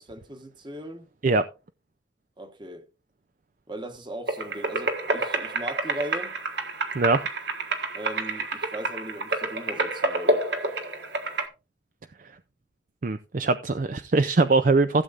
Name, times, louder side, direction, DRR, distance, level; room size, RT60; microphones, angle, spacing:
voice 1, 0.0-1.1 2.4-2.9 3.7-6.4 7.9-10.5, right 1 dB, 25° right, 1.3 m, -38 dB
sound 1, 4.3-11.5, right 2 dB, 70° right, 1.6 m, -29 dB
voice 2, 13.0-15.0, right 3 dB, 45° right, 0.5 m, -22 dB
15.5 x 7.9 x 2.5 m
head